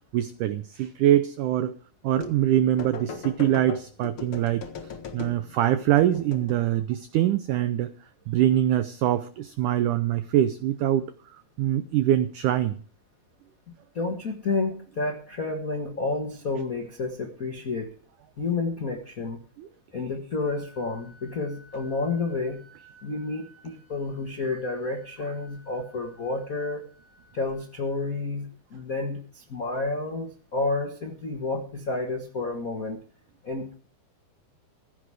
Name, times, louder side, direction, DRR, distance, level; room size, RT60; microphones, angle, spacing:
voice 1, 0.1-1.8 2.0-4.7 5.1-7.9 8.3-11.1 11.6-12.8 19.6-19.7, right 12 dB, 90° right, 12 dB, 1.7 m, -23 dB
sound 1, 2.1-2.5 2.8-5.6 6.0-6.7, left 5 dB, 50° left, 1.6 m, -38 dB
voice 2, 13.7-17.9 18.4-19.4 19.9-22.6 23.0-26.8 27.3-33.0 33.4-33.7, left 3 dB, 75° left, 3 dB, 0.7 m, -30 dB
Wind instrument woodwind instrument, 20.5-28.2, equal, 40° right, 6.2 m, -57 dB
15.5 x 9.6 x 4.9 m, 0.44 s
omnidirectional pair, 4.5 m